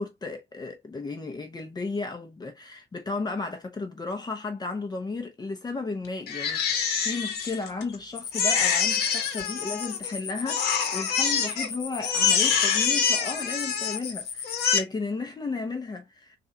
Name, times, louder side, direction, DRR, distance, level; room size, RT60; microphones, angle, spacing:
voice 1, 0.0-16.4, left 3 dB, 25° left, 0.9 m, -34 dB
Crying sobbing, 6.3-8.0 8.3-10.1 10.5-11.7 12.0-14.1 14.4-14.8, left 6 dB, 70° left, 1.2 m, -25 dB
sound 1, 8.2-14.7, left 7 dB, 55° left, 0.9 m, -36 dB
4.0 x 2.6 x 2.7 m
cardioid pair, 110°, 17 cm